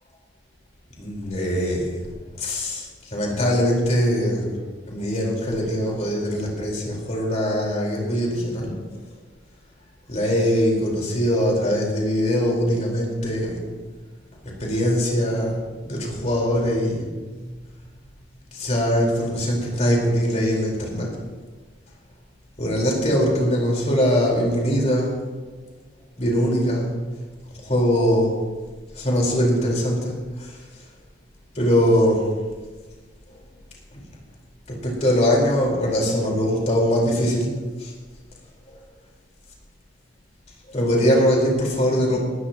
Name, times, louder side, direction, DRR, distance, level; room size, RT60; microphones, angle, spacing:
voice 1, 1.0-2.0 2.4-4.5 4.9-8.7 10.1-13.7 14.6-17.1 17.4-17.6 18.5-21.1 22.6-25.2 26.2-26.9 27.6-28.4 28.9-30.6 31.5-32.3 33.9-34.0 34.7-37.9 38.7-38.8 40.7-42.2, equal, 40° left, -2 dB, 4.4 m, -22 dB
20.0 x 14.0 x 3.0 m, 1.4 s
head